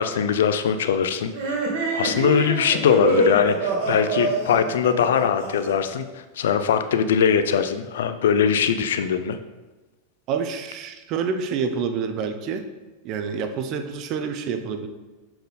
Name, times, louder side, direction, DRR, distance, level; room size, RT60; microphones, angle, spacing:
voice 1, 0.0-1.3 1.9-6.0 6.4-9.4, left 7 dB, 85° left, 10 dB, 0.5 m, -21 dB
sound 1, 1.3-5.9, right 3 dB, 65° right, 2.0 m, -25 dB
voice 2, 10.3-12.7 13.0-14.9, right 6 dB, 45° right, 8 dB, 0.7 m, -27 dB
6.6 x 4.4 x 4.0 m, 1.2 s
supercardioid pair, 120°, 0 cm